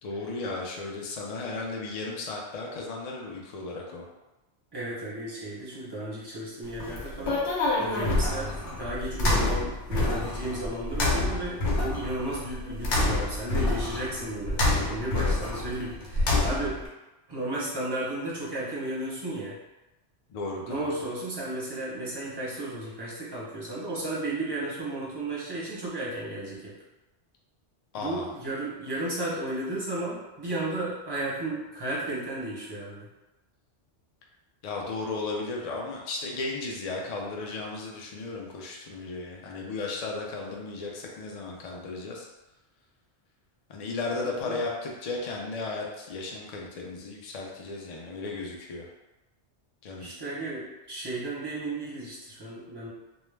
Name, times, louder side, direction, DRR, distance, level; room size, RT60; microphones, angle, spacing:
voice 1, 0.0-4.1 20.3-20.8 27.9-28.3 34.6-42.3 43.7-48.9 49.8-50.1, left 3 dB, 65° left, -1 dB, 0.4 m, -35 dB
voice 2, 4.7-16.8 17.3-19.6 20.7-26.8 28.0-33.1 44.2-44.6 50.0-52.9, right 1 dB, 25° right, -7 dB, 0.6 m, -34 dB
sound 1, 6.7-16.9, left 2 dB, 85° left, 0.9 m, -27 dB
2.3 x 2.0 x 3.1 m, 1.0 s
omnidirectional pair, 1.2 m